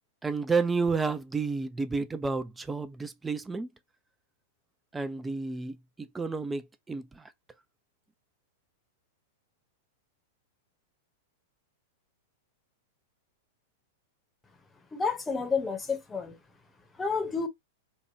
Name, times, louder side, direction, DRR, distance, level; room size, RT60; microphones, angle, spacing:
voice 1, 0.2-3.7 4.9-7.3, right 4 dB, 10° right, 0.4 m, -31 dB
voice 2, 14.9-16.4 17.0-17.5, left 5 dB, 15° left, 0.8 m, -30 dB
2.9 x 2.2 x 2.7 m
hypercardioid pair, 100°, 0 cm